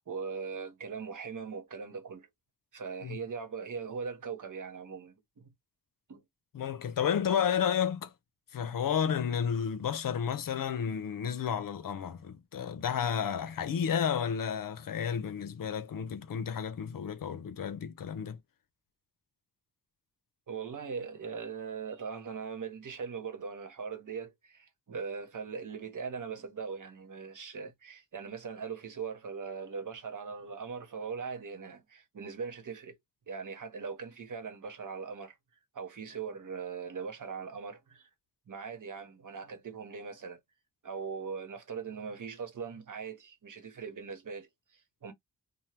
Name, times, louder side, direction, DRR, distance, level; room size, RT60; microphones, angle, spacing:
voice 1, 0.0-2.3 2.7-5.5 6.1-6.2 20.5-33.0 33.3-35.4 35.7-38.1 38.5-40.4 40.8-45.1, right 5 dB, 65° right, 1.0 m, -40 dB
voice 2, 6.5-8.1 8.5-18.4, left 8 dB, 70° left, 0.6 m, -31 dB
2.8 x 2.2 x 3.3 m
wide cardioid pair, 135°, 34 cm